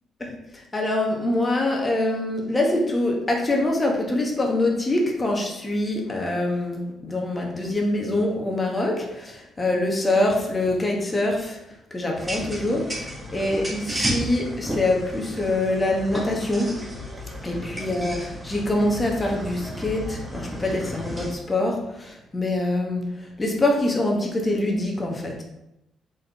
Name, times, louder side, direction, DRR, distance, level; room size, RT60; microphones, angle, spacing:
voice 1, 0.2-11.6 11.9-16.8 17.4-25.4, left 1 dB, 25° left, 0 dB, 1.0 m, -25 dB
sound 1, 12.2-21.3, equal, 15° right, 1.2 m, -33 dB
4.1 x 3.7 x 3.4 m, 0.88 s
cardioid pair, 90°, 0 cm